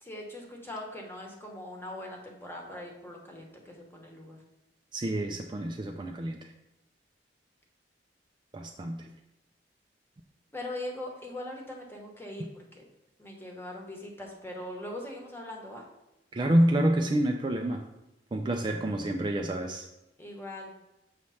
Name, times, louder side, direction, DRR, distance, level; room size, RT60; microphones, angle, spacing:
voice 1, 0.0-4.4 10.5-12.9 13.2-15.8 20.2-20.8, left 1 dB, 15° left, 0 dB, 1.0 m, -41 dB
voice 2, 4.9-6.5 8.5-9.1 16.3-17.8 18.3-19.9, right 1 dB, 25° right, 4 dB, 0.4 m, -28 dB
7.3 x 3.1 x 5.6 m, 0.92 s
head